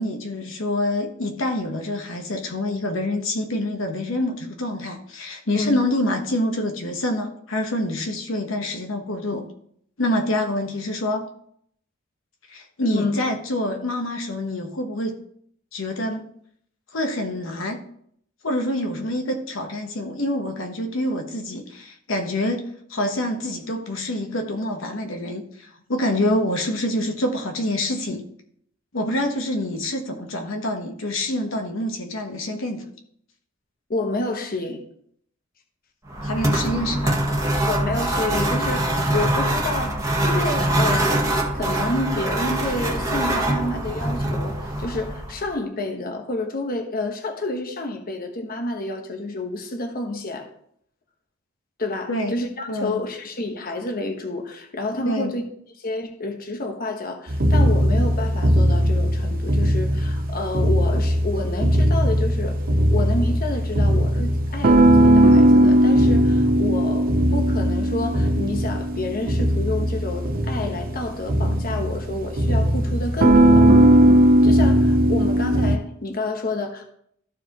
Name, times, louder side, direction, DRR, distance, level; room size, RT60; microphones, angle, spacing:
voice 1, 0.0-9.4 10.0-11.3 12.5-15.2 15.7-16.2 16.9-17.8 18.4-28.2 28.9-32.9 36.2-37.2 52.1-52.3 52.7-53.0 55.0-55.3, left 1 dB, 75° left, 4 dB, 1.1 m, -26 dB
voice 2, 12.9-13.3 33.9-34.8 37.7-50.5 51.8-55.4 55.8-62.6 62.9-73.7 74.4-76.8, left 2 dB, 45° left, 4 dB, 1.1 m, -29 dB
sound 1, 36.1-45.5, right 1 dB, 15° right, 1.2 m, -23 dB
sound 2, 57.3-75.8, right 1 dB, 45° right, 0.7 m, -18 dB
13.5 x 4.9 x 3.0 m, 0.67 s
head